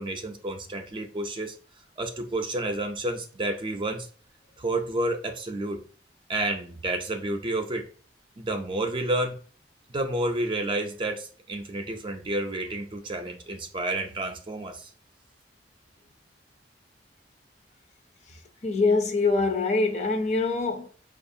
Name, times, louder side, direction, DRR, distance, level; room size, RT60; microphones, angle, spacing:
voice 1, 0.0-1.6 2.0-4.1 4.6-5.8 6.3-7.9 8.4-9.4 9.9-14.9, right 2 dB, 30° right, 0.5 m, -30 dB
voice 2, 18.3-20.9, left 3 dB, 40° left, 0.6 m, -24 dB
5.2 x 2.4 x 2.6 m
head